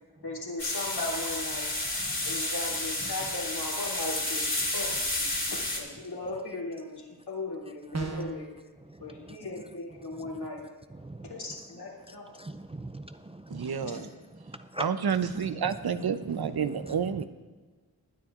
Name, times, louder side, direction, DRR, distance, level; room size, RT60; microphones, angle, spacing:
voice 1, 0.2-1.7 2.2-4.4 4.7-8.5 9.0-10.6 11.2-12.2 13.9-14.1 15.5-15.6, left 2 dB, 75° left, -3 dB, 3.1 m, -37 dB
sound 1, 0.6-5.8, left 1 dB, 30° left, 2.4 m, -31 dB
voice 2, 2.1-2.4 8.9-9.4 10.2-10.3 10.9-11.6 12.1-14.0 14.3-14.9 15.3-15.7 16.5-17.2, right 1 dB, 15° right, 8 dB, 0.4 m, -42 dB
sound 2, 7.9-8.5, right 3 dB, 40° right, 1.2 m, -33 dB
voice 3, 13.5-14.1 14.8-17.2, right 7 dB, 70° right, 11 dB, 0.7 m, -29 dB
20.0 x 9.8 x 2.5 m, 1.3 s
wide cardioid pair, 90°, 39 cm